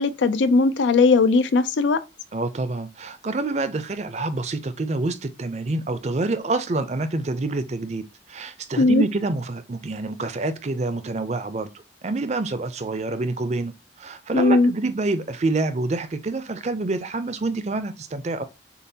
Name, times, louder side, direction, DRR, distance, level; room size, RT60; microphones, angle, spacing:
voice 1, 0.0-2.0 8.8-9.0 14.3-14.7, left 3 dB, 90° left, 0.5 m, -18 dB
voice 2, 2.3-11.7 12.0-18.4, right 2 dB, 40° right, 0.5 m, -27 dB
6.8 x 2.4 x 2.7 m
head